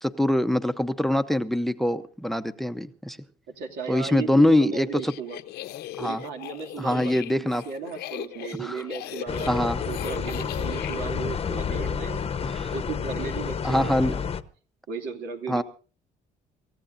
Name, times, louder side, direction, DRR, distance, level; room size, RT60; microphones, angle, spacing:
voice 1, 0.0-3.2 3.9-5.1 6.0-6.2 6.8-7.6 8.6-8.8 9.5-9.8 12.4-12.7 13.6-14.1 15.5-15.6, left 1 dB, ahead, 12 dB, 0.7 m, -24 dB
voice 2, 3.6-5.4 6.0-12.3 12.7-14.2 14.9-15.6, right 5 dB, 80° right, 3 dB, 2.7 m, -35 dB
sound 1, 4.8-11.0, left 13 dB, 75° left, 0.9 m, -39 dB
sound 2, 9.3-14.4, left 7 dB, 35° left, 0.9 m, -30 dB
27.0 x 15.0 x 2.6 m, 0.38 s
cardioid pair, 110°, 17 cm